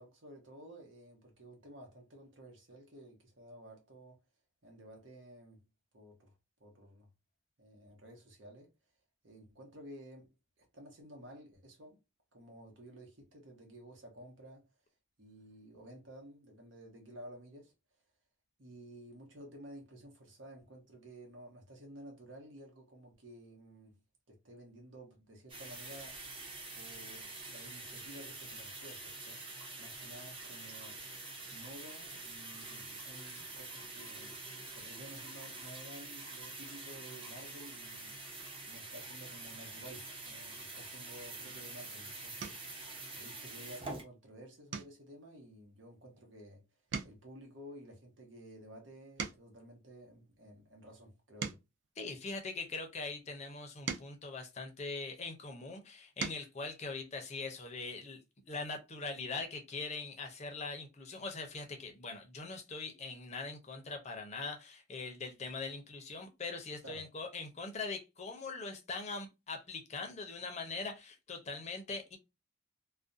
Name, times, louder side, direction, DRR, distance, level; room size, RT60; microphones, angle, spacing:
voice 1, 0.0-4.2 4.6-5.6 5.9-6.3 6.6-7.1 7.6-8.7 9.2-10.3 10.6-12.0 12.3-14.7 15.2-17.7 18.6-24.0 24.3-26.2 26.7-29.4 29.8-31.0 31.5-34.4 34.7-38.1 38.6-42.9 43.1-46.6 47.0-51.6 66.8-67.0, right 1 dB, 80° right, 1.0 m, -53 dB
sound 1, 25.5-44.0, right 3 dB, 25° right, 0.7 m, -46 dB
sound 2, 42.4-42.8 43.3-43.6 44.0-44.2 44.7-46.5 46.8-49.7 50.3-52.8 53.4-55.3 55.8-56.6 58.0-58.1 58.4-58.5, right 5 dB, 65° right, 0.4 m, -45 dB
voice 2, 52.0-58.2 58.5-72.2, left 3 dB, 35° left, 0.5 m, -42 dB
2.4 x 2.1 x 2.5 m
head